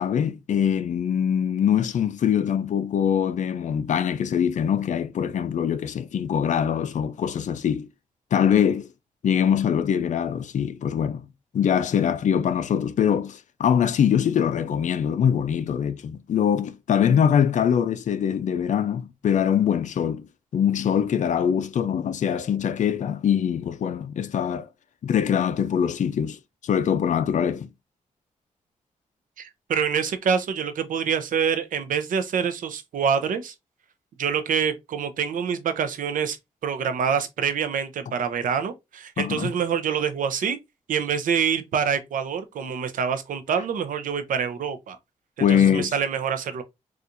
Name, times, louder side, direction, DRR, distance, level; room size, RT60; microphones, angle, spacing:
voice 1, 0.0-7.9 8.3-8.9 9.2-11.3 11.5-24.7 25.0-27.7 39.2-39.5 45.4-45.9, left 8 dB, 65° left, 0.4 m, -23 dB
voice 2, 29.4-33.5 34.2-36.4 36.6-40.6 40.9-45.0 45.4-46.6, right 7 dB, 85° right, 0.6 m, -26 dB
4.2 x 2.4 x 2.5 m
cardioid pair, 65°, 14 cm